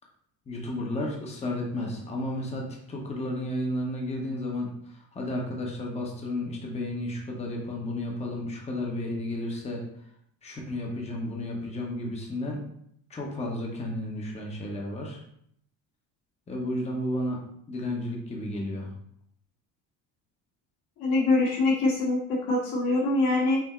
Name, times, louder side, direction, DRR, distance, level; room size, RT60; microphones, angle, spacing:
voice 1, 0.5-9.8 10.4-12.6 13.1-15.2 16.5-17.4 17.7-18.9, left 1 dB, 15° left, -1 dB, 0.8 m, -32 dB
voice 2, 21.0-23.6, left 2 dB, 70° left, -6 dB, 1.6 m, -24 dB
5.8 x 2.1 x 4.2 m, 0.69 s
cardioid pair, 140°, 38 cm